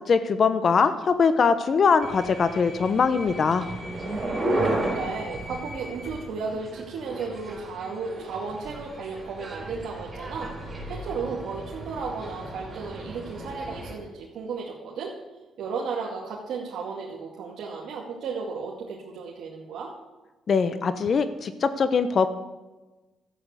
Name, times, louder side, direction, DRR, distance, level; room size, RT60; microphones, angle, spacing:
voice 1, 0.1-3.7 20.5-22.3, left 5 dB, 50° left, 11 dB, 0.9 m, -22 dB
sound 1, 2.0-13.9, right 1 dB, 25° right, 4.8 m, -34 dB
voice 2, 4.6-10.5 10.9-15.1 15.6-19.9, right 5 dB, 75° right, -3 dB, 2.3 m, -34 dB
12.5 x 8.6 x 8.2 m, 1.1 s
cardioid pair, 90°, 0 cm